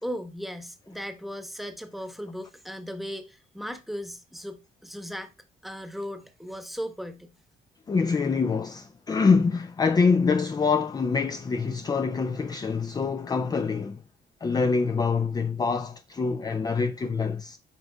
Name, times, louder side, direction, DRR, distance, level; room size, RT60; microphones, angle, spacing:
voice 1, 0.0-5.3 5.6-7.3, equal, ahead, 1.0 m, -37 dB
voice 2, 7.9-14.0 14.4-17.6, left 4 dB, 20° left, 0.4 m, -25 dB
8.2 x 5.1 x 2.3 m
cardioid pair, 90°, 20 cm